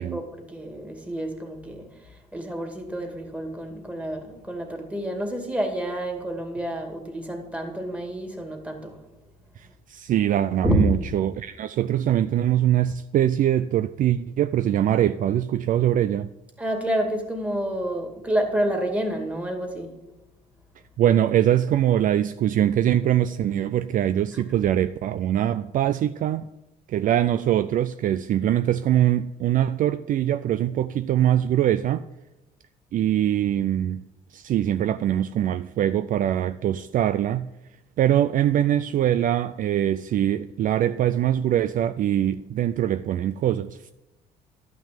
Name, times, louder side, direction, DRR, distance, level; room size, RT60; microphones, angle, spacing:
voice 1, 0.0-9.0 10.6-10.8 16.6-19.9, right 1 dB, 10° right, 2.3 m, -29 dB
voice 2, 9.6-16.3 21.0-26.5 26.9-32.0 32.9-34.0 34.3-37.5 38.0-43.9, right 11 dB, 50° right, 0.4 m, -23 dB
11.5 x 6.0 x 9.0 m
cardioid pair, 110°, 17 cm